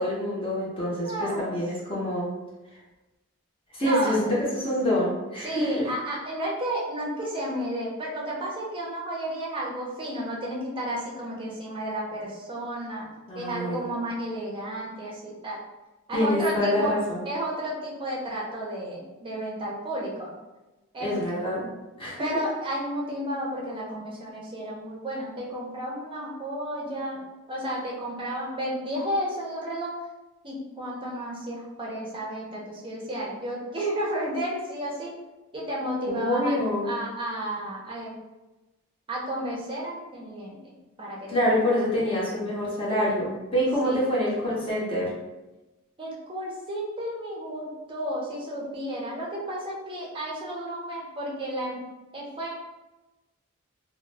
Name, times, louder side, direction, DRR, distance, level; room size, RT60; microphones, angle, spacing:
voice 1, 0.0-2.3 3.7-5.9 13.3-13.9 16.1-17.2 21.0-21.7 22.0-22.3 36.1-36.9 41.3-45.1, left 1 dB, 25° left, -6 dB, 0.7 m, -26 dB
voice 2, 0.9-1.5 3.8-4.2 5.4-13.1 13.3-15.6 16.1-17.0 17.2-20.3 20.9-21.2 22.2-27.2 27.5-29.9 30.4-35.1 35.5-38.2 39.1-40.7 41.0-41.3 41.6-41.7 43.8-44.1 46.0-51.8 52.1-52.6, right 1 dB, 25° right, -3 dB, 0.6 m, -32 dB
2.2 x 2.0 x 3.2 m, 1.1 s
head